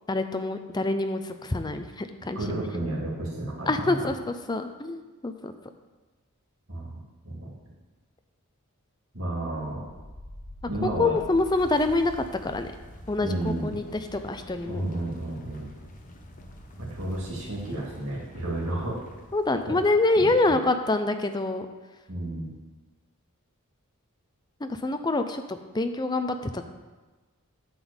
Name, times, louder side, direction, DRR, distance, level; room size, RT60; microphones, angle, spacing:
voice 1, 0.1-2.4 3.7-5.5 10.8-12.7 13.1-14.8 19.3-21.7 24.6-26.7, left 2 dB, 20° left, 8 dB, 0.5 m, -26 dB
voice 2, 2.3-4.1 6.7-7.0 7.2-7.6 9.1-9.8 10.7-11.2 13.2-13.7 14.6-15.7 16.8-19.0 19.7-19.8 20.2-20.5 22.1-22.5, right 1 dB, 60° right, -5 dB, 2.4 m, -32 dB
sound 1, 9.5-20.3, left 1 dB, 35° left, 0.9 m, -46 dB
9.5 x 4.0 x 7.1 m, 1.2 s
head